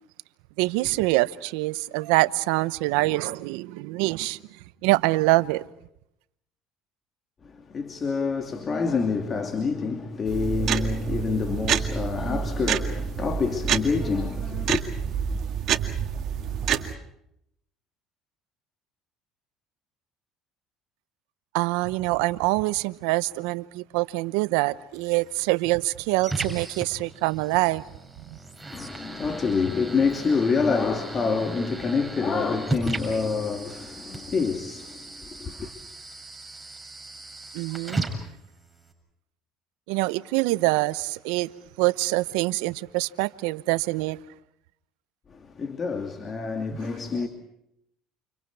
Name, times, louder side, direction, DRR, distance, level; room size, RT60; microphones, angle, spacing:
voice 1, 0.6-4.4 4.8-5.6 21.5-27.8 37.5-38.1 39.9-41.5 41.8-44.2 46.7-46.8, right 21 dB, 80° right, 0.8 m, -25 dB
voice 2, 7.4-14.8 28.7-35.7 45.3-47.3, left 4 dB, 35° left, 2.7 m, -27 dB
sound 1, 10.3-16.9, right 8 dB, 55° right, 2.2 m, -28 dB
sound 2, 24.9-38.9, right 2 dB, 5° right, 7.3 m, -37 dB
30.0 x 28.5 x 4.8 m
supercardioid pair, 75°, 0 cm